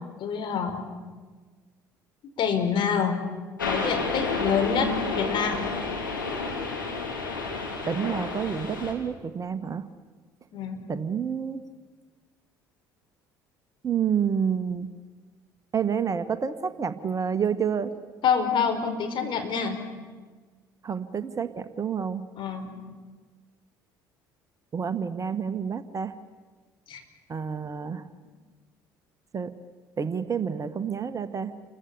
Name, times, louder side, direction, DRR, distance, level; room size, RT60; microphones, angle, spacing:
voice 1, 0.2-0.8 2.4-3.2 3.6-5.7 10.5-10.8 18.2-19.8 22.4-22.7 26.9-27.0, left 6 dB, 50° left, 5 dB, 4.9 m, -26 dB
sound 1, 3.6-8.9, left 3 dB, 85° left, 4.0 m, -30 dB
voice 2, 7.9-9.9 10.9-11.6 13.8-14.9 15.7-17.9 20.8-22.3 24.7-26.1 27.3-28.0 29.3-29.5 30.0-31.5, right 7 dB, 30° right, 11 dB, 1.5 m, -29 dB
29.5 x 23.5 x 7.2 m, 1.4 s
figure-of-eight pair, 55°, 11 cm